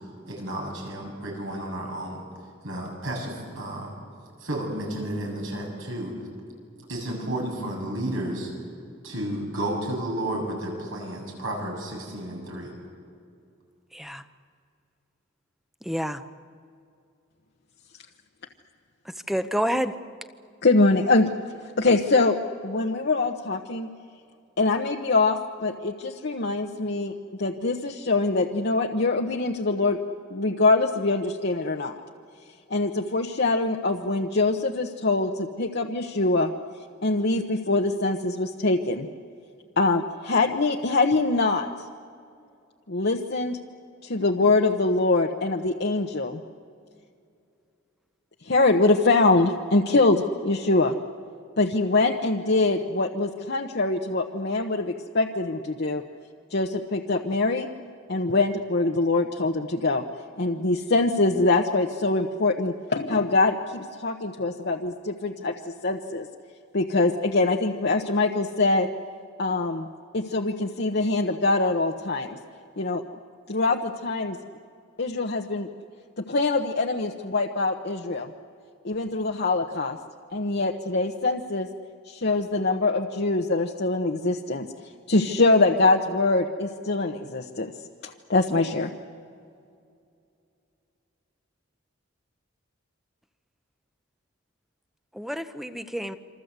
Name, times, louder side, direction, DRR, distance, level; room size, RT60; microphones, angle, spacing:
voice 1, 0.0-2.2 2.6-3.9 4.4-6.1 6.9-8.5 9.0-12.7, right 1 dB, 90° right, 0 dB, 7.7 m, -32 dB
voice 2, 15.9-16.2 19.3-19.9 95.2-96.2, equal, ahead, 10 dB, 0.8 m, -28 dB
voice 3, 20.6-21.3 21.8-22.4 22.6-23.9 24.6-27.1 27.4-30.0 30.3-31.9 32.7-36.5 37.0-39.1 39.8-41.7 42.9-43.6 44.0-46.4 48.4-50.9 51.6-56.0 56.5-57.7 58.1-60.0 60.4-66.3 66.7-68.9 69.4-69.9 70.1-72.4 72.8-73.0 73.5-74.4 75.0-75.7 76.2-78.3 78.8-80.0 80.3-81.7 82.1-84.7 85.1-87.7 88.0-88.9, left 3 dB, 55° left, 2 dB, 1.0 m, -23 dB
27.5 x 25.5 x 8.1 m, 2.4 s
head